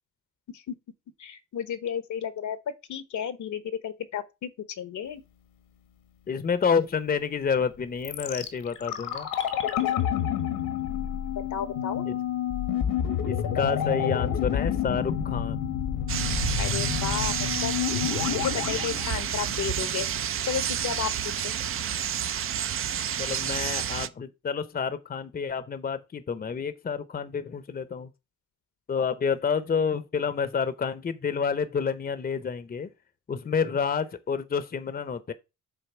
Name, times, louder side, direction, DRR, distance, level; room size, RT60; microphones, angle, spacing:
voice 1, 1.2-2.6 2.9-4.5 4.8-5.2 11.5-12.0 16.6-17.7 18.3-20.1 20.4-21.1 21.4-21.5, left 8 dB, 60° left, 1.0 m, -32 dB
voice 2, 6.3-9.3 12.1-12.2 13.2-15.6 23.2-28.1 28.9-32.9 33.3-35.3, left 6 dB, 25° left, 0.8 m, -29 dB
sound 1, 8.0-20.0 20.3-20.4, left 9 dB, 80° left, 1.5 m, -29 dB
sound 2, 16.1-24.1, right 9 dB, 40° right, 0.5 m, -30 dB
6.6 x 3.9 x 6.1 m
cardioid pair, 95°, 33 cm